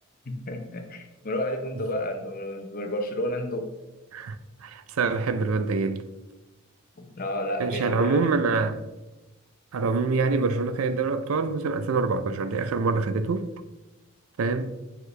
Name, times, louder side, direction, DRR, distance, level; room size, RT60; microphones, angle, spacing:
voice 1, 0.3-3.7 7.0-8.2, left 1 dB, 40° left, 0.7 m, -31 dB
voice 2, 4.1-6.0 7.6-8.8 9.7-13.5 14.4-14.7, right 4 dB, 75° right, 0.4 m, -25 dB
6.4 x 4.7 x 3.2 m
head